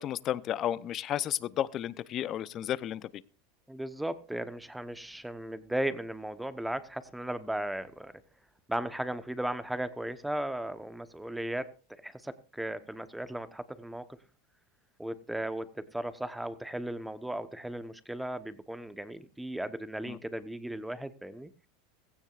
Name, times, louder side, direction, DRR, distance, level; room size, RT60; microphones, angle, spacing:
voice 1, 0.0-3.2 20.1-20.2, left 11 dB, 35° left, 0.7 m, -33 dB
voice 2, 3.7-8.1 8.7-14.1 15.0-21.5, right 1 dB, 5° right, 1.0 m, -36 dB
16.0 x 15.0 x 2.5 m
supercardioid pair, 125°, 0 cm